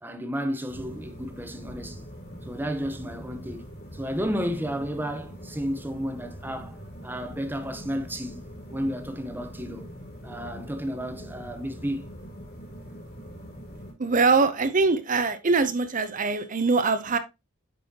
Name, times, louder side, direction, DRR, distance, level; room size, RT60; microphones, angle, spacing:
voice 1, 0.0-2.1 2.5-3.7 3.9-9.9 10.2-12.1, equal, 10° right, 0.8 m, -32 dB
sound 1, 0.7-13.9, equal, 50° left, 4.2 m, -43 dB
voice 2, 14.0-17.2, right 4 dB, 40° right, 0.7 m, -23 dB
8.6 x 5.5 x 2.8 m
head